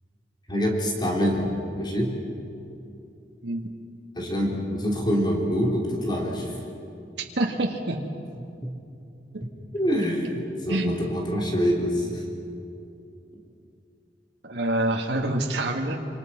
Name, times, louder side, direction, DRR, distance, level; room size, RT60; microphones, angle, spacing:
voice 1, 0.5-2.1 4.2-6.6 8.6-8.7 9.7-12.2, equal, 25° left, -2 dB, 3.8 m, -25 dB
voice 2, 7.4-8.0 9.3-9.4 10.7-10.9 14.4-16.0, right 1 dB, 85° right, 1 dB, 1.8 m, -26 dB
27.5 x 25.5 x 5.9 m, 2.7 s
head